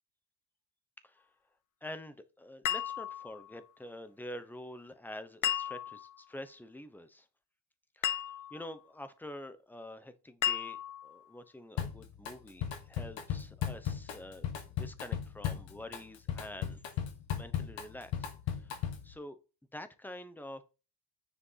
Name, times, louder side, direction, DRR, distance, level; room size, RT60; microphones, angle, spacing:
voice 1, 1.8-7.3 8.0-10.8 11.0-14.5 14.8-16.8 17.4-19.4 19.7-20.6, left 1 dB, 5° left, 0.9 m, -47 dB
sound 1, 2.7-3.6 5.4-6.2 8.0-8.7 10.4-11.2, left 11 dB, 40° left, 0.7 m, -34 dB
Drum kit, 11.8-12.3 12.6-19.1, left 9 dB, 75° left, 2.1 m, -36 dB
10.0 x 5.0 x 5.7 m
cardioid pair, 155°, 46 cm